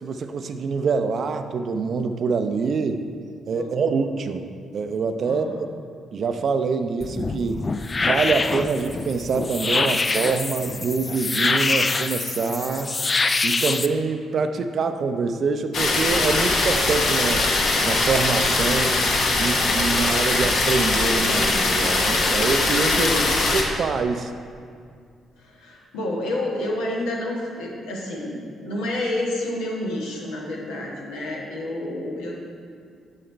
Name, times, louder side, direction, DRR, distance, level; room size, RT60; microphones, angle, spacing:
voice 1, 0.0-3.0 3.5-4.5 4.7-5.7 6.1-7.6 8.0-12.9 13.4-17.4 17.8-19.0 19.4-23.1 23.5-24.3, right 4 dB, 60° right, 8 dB, 0.5 m, -25 dB
voice 2, 3.6-3.9 5.2-5.6 22.9-23.3 25.4-32.4, left 1 dB, 85° left, -3 dB, 1.2 m, -29 dB
sound 1, 7.0-13.9, left 3 dB, 35° left, 0.4 m, -25 dB
sound 2, 15.7-23.6, left 2 dB, 65° left, 0.9 m, -21 dB
6.6 x 6.5 x 4.4 m, 2.2 s
hypercardioid pair, 45°, 0 cm